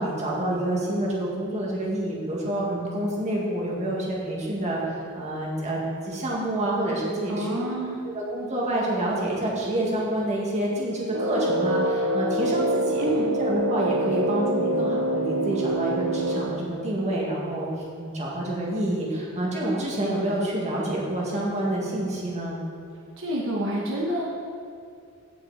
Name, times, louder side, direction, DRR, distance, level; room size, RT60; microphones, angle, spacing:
voice 1, 0.0-4.8 5.1-7.6 8.1-13.0 13.4-17.7 18.0-22.6, right 1 dB, 30° right, -4 dB, 2.2 m, -28 dB
voice 2, 7.3-8.0 13.0-13.3 23.2-24.2, right 1 dB, 60° right, -4 dB, 1.3 m, -28 dB
Brass instrument, 11.1-16.7, right 1 dB, 85° right, 0.9 m, -25 dB
17.0 x 6.2 x 4.2 m, 2.4 s
head